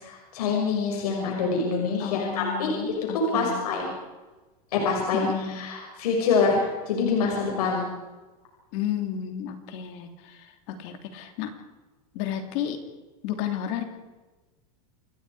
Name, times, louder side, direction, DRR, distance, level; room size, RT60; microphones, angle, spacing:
voice 1, 0.0-2.7 3.1-3.9 4.7-7.9, left 4 dB, 90° left, 0 dB, 6.2 m, -25 dB
voice 2, 2.0-3.8 5.1-5.6 8.7-11.5 12.1-12.8 13.2-13.8, left 10 dB, 50° left, 5 dB, 3.1 m, -32 dB
29.0 x 22.0 x 5.0 m, 1.2 s
supercardioid pair, 155°, 19 cm